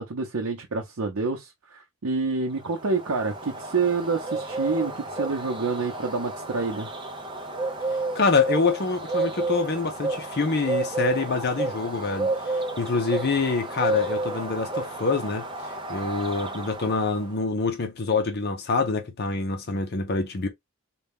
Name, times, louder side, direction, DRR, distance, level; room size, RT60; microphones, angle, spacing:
voice 1, 0.0-6.9, right 4 dB, 70° right, 0.7 m, -28 dB
Bird, 2.6-17.3, right 2 dB, 20° right, 0.6 m, -31 dB
voice 2, 8.1-20.5, left 4 dB, 45° left, 0.6 m, -26 dB
4.0 x 2.3 x 3.5 m
head